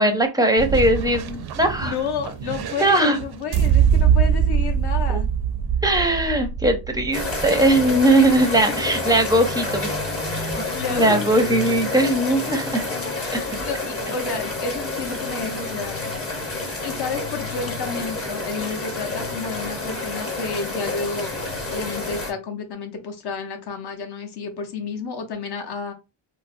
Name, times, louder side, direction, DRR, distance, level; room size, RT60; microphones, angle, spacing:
voice 1, 0.0-1.9 2.8-3.2 5.1-5.2 5.8-9.9 10.3-10.6 10.9-12.8 13.3-13.4, right 1 dB, 10° right, 5 dB, 0.5 m, -19 dB
sound 1, 0.6-8.6, right 8 dB, 55° right, 0.5 m, -23 dB
voice 2, 1.8-5.3 8.1-8.3 8.7-9.0 10.7-11.4 13.1-16.0 16.8-21.3 21.7-25.9, left 5 dB, 55° left, 3 dB, 0.9 m, -31 dB
sound 2, 7.1-22.3, left 2 dB, 30° left, 0.9 m, -29 dB
4.5 x 2.0 x 2.5 m, 0.27 s
cardioid pair, 125°, 48 cm